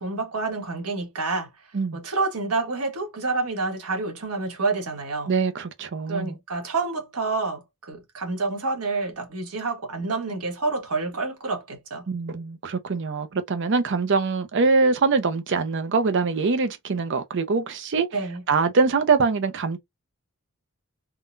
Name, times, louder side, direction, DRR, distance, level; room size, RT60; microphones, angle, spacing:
voice 1, 0.0-5.3 6.1-12.1 18.1-18.4, right 3 dB, 80° right, 1.3 m, -28 dB
voice 2, 5.3-6.3 12.1-18.1 18.5-19.8, right 4 dB, 55° right, 0.5 m, -23 dB
3.7 x 2.2 x 2.5 m
head